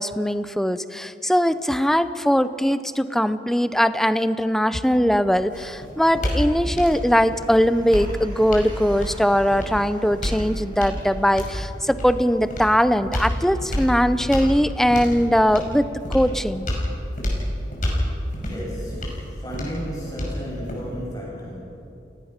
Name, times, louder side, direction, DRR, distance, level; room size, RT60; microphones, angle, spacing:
voice 1, 0.0-16.7, equal, ahead, 12 dB, 0.7 m, -20 dB
sound 1, 5.1-21.1, equal, 50° left, 5.7 m, -30 dB
Car, 6.8-12.7, right 1 dB, 30° right, 3.9 m, -48 dB
voice 2, 18.3-21.9, equal, 25° left, -4 dB, 7.0 m, -34 dB
29.5 x 18.5 x 5.9 m, 2.8 s
head